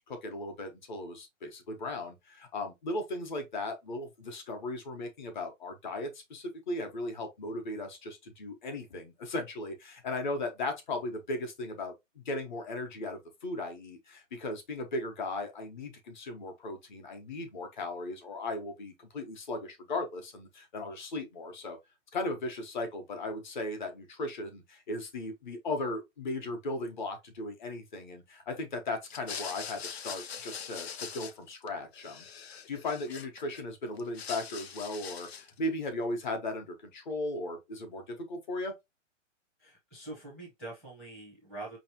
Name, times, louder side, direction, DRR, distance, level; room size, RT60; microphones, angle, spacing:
voice 1, 0.0-21.8 22.1-38.7, left 2 dB, 35° left, 1.1 m, -37 dB
sound 1, 29.0-31.7 31.9-33.6 34.0-35.6, left 7 dB, 55° left, 0.8 m, -42 dB
voice 2, 39.6-41.8, right 2 dB, ahead, 0.7 m, -44 dB
5.2 x 3.1 x 2.8 m
hypercardioid pair, 175°, 38 cm